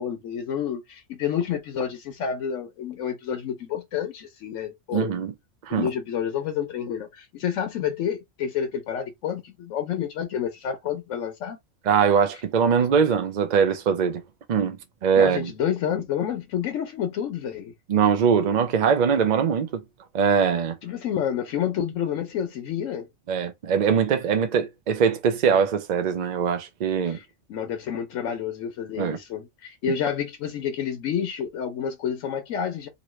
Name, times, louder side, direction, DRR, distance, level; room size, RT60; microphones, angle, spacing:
voice 1, 0.0-5.1 5.7-11.6 15.2-17.7 20.8-23.1 27.0-32.9, left 8 dB, 85° left, 1.0 m, -29 dB
voice 2, 4.9-5.3 5.6-5.9 11.9-14.2 14.5-15.5 17.9-19.8 20.1-20.8 23.3-27.2 29.0-29.2, right 7 dB, 55° right, 0.5 m, -22 dB
3.0 x 2.6 x 3.0 m
omnidirectional pair, 1.3 m